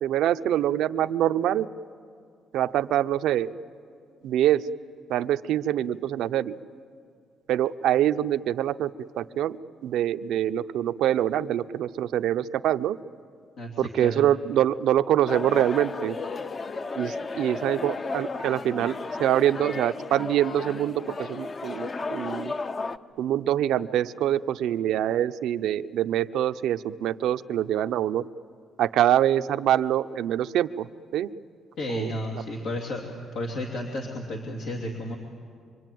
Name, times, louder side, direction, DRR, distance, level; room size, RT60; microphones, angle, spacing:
voice 1, 0.0-1.7 2.5-3.5 4.2-4.6 5.1-6.5 7.5-8.9 9.2-9.6 9.8-13.0 13.8-16.1 17.0-22.5 23.2-28.2 28.8-30.8 31.1-31.3 31.9-32.1, right 11 dB, 80° right, 12 dB, 0.6 m, -25 dB
voice 2, 13.6-14.2 31.8-33.0 33.3-35.1, left 1 dB, 80° left, 0 dB, 2.8 m, -32 dB
sound 1, 15.2-23.0, left 3 dB, 35° left, 0.8 m, -34 dB
25.5 x 25.5 x 9.3 m, 2.3 s
cardioid pair, 100°, 0 cm